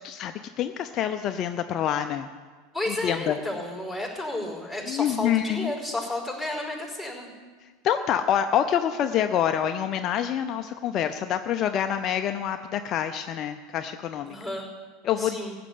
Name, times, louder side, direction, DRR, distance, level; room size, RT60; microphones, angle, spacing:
voice 1, 0.0-2.3 3.0-3.4 4.9-5.7 7.8-14.4 15.0-15.4, left 9 dB, 40° left, 7 dB, 0.6 m, -26 dB
voice 2, 2.7-7.3 14.3-14.7 15.2-15.6, left 1 dB, 5° right, 0 dB, 4.7 m, -32 dB
15.0 x 6.8 x 9.4 m, 1.5 s
hypercardioid pair, 85°, 0 cm